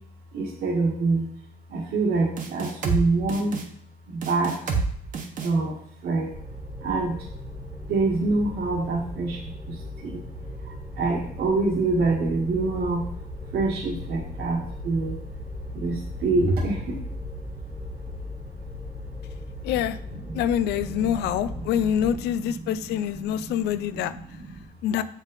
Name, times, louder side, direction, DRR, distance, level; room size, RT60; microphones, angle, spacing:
voice 1, 0.3-1.3 1.7-3.6 4.1-4.7 5.4-6.3 6.8-7.2 7.9-10.2 10.6-13.1 13.5-15.2 15.7-17.0 20.1-20.4 20.8-24.6, right 3 dB, 70° right, -5 dB, 1.7 m, -27 dB
sound 1, 2.4-3.0 3.3-3.6 4.2-4.9 5.1-5.5, right 5 dB, 50° right, 1.2 m, -27 dB
sound 2, 6.3-22.2, left 1 dB, 10° right, 0.9 m, -37 dB
voice 2, 19.6-20.0 20.3-24.1 24.8-25.0, left 10 dB, 85° left, 13 dB, 0.5 m, -25 dB
7.2 x 5.4 x 4.0 m, 0.66 s
cardioid pair, 110°, 17 cm